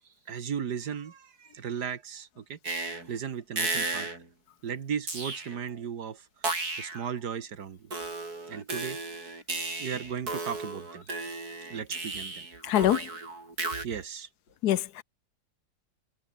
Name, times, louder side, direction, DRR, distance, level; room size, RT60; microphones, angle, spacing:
voice 1, 0.3-2.6 3.1-4.1 4.6-6.3 6.8-7.9 8.5-9.3 9.8-11.1 11.7-12.5 13.8-14.3, right 7 dB, 85° right, 2.1 m, -36 dB
sound 1, 2.6-3.1 3.6-4.3 5.1-5.7 6.4-7.1 7.9-13.8, right 3 dB, 70° right, 5.3 m, -34 dB
voice 2, 12.6-13.1 14.6-15.0, left 12 dB, 75° left, 1.3 m, -24 dB
omnidirectional pair, 1.7 m